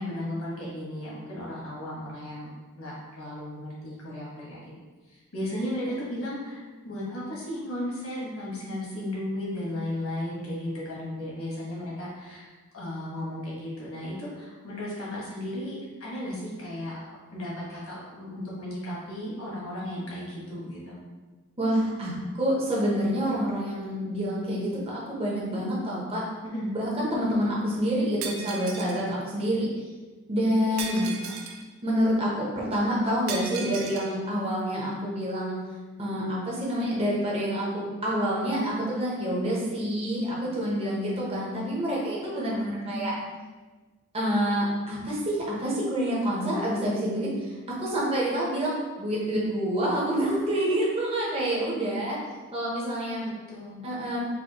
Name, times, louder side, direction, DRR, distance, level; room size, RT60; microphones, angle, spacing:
voice 1, 0.0-2.5 2.8-4.6 5.1-12.5 12.7-21.0 26.5-26.7 30.7-31.4 42.8-43.2 53.2-53.8, left 1 dB, 70° left, -5 dB, 1.3 m, -35 dB
voice 2, 21.6-26.2 26.7-29.7 30.3-31.0 31.8-35.6 36.0-43.1 44.1-47.5 47.8-52.2 52.5-53.2 53.8-54.2, equal, 25° right, -5 dB, 0.8 m, -27 dB
Shatter, 28.2-29.0 30.8-31.6 33.3-34.1, right 5 dB, 65° right, 0.4 m, -36 dB
4.2 x 2.6 x 2.9 m, 1.3 s
head